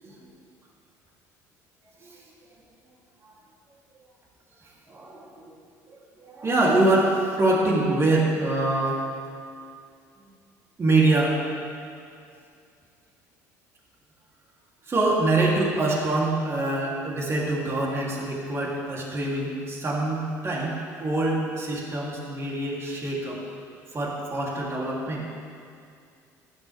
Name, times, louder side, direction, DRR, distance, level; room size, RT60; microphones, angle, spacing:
voice 1, 4.9-5.5 5.9-9.0 10.8-11.6 14.8-23.4 23.9-25.3, right 2 dB, 35° right, -4 dB, 3.2 m, -25 dB
15.0 x 11.0 x 3.5 m, 2.3 s
supercardioid pair, 75°, 8 cm